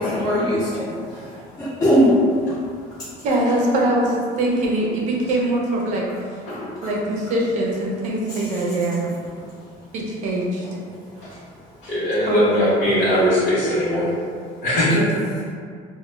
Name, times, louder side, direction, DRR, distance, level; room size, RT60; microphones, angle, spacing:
voice 1, 0.0-2.2, equal, 20° left, -13 dB, 0.5 m, -20 dB
voice 2, 3.2-6.1 6.8-9.1 9.9-10.6 12.3-12.6 14.9-15.1, right 1 dB, 45° right, -2 dB, 0.4 m, -22 dB
voice 3, 11.8-14.1 14.6-15.2, equal, 70° left, -12 dB, 0.9 m, -20 dB
2.1 x 2.0 x 3.1 m, 2.1 s
cardioid pair, 175°, 17 cm